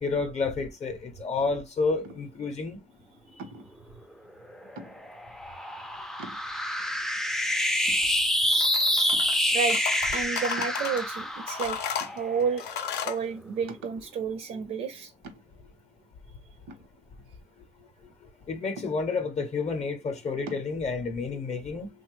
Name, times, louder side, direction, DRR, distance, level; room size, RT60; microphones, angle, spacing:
voice 1, 0.0-2.8 18.5-21.9, left 4 dB, 40° left, 0.6 m, -30 dB
sound 1, 2.0-2.5 3.4-3.8 4.8-5.3 5.8-5.9 6.2-6.8 7.4-7.5 7.9-8.6 9.1-9.5 10.6-11.3 12.0-12.6 13.0-13.1 13.7-14.1 15.2-15.7 16.7-17.6 18.8-19.4 20.5-20.7, right 2 dB, 85° right, 0.8 m, -45 dB
sound 2, 4.5-13.1, left 1 dB, 5° left, 0.3 m, -27 dB
sound 3, 8.5-9.4 9.7-11.0 11.5-13.2, left 8 dB, 80° left, 0.5 m, -34 dB
voice 2, 9.5-9.8 10.1-11.8 12.1-12.6 13.0-15.1, right 6 dB, 55° right, 0.5 m, -31 dB
3.1 x 2.2 x 3.0 m
cardioid pair, 110°, 17 cm